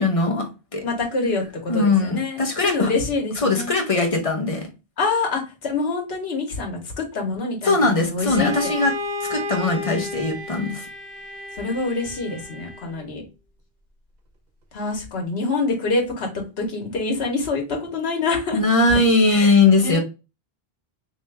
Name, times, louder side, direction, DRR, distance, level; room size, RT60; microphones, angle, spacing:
voice 1, 0.0-0.8 1.7-2.9 3.4-4.7 7.6-8.9 9.2-10.9 18.5-20.0, left 3 dB, 35° left, 2 dB, 0.8 m, -20 dB
voice 2, 0.8-3.8 5.0-8.7 11.6-13.3 14.7-18.6 18.9-19.0 19.3-19.6 19.8-20.0, left 3 dB, 85° left, 1 dB, 1.2 m, -26 dB
Bowed string instrument, 8.2-13.0, left 2 dB, 70° right, 0.9 m, -32 dB
3.4 x 2.8 x 3.1 m, 0.29 s
omnidirectional pair, 1.0 m